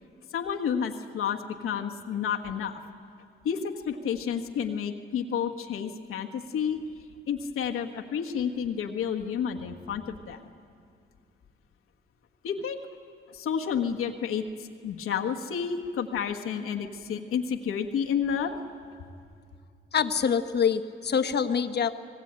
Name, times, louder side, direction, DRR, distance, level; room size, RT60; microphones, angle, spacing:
voice 1, 0.3-2.8 3.4-6.8 7.3-10.5 12.4-12.8 13.3-18.6, left 7 dB, 90° left, 3 dB, 1.5 m, -30 dB
voice 2, 19.9-22.0, left 7 dB, 50° left, 9 dB, 1.2 m, -25 dB
26.0 x 19.0 x 8.9 m, 2.3 s
cardioid pair, 95°, 21 cm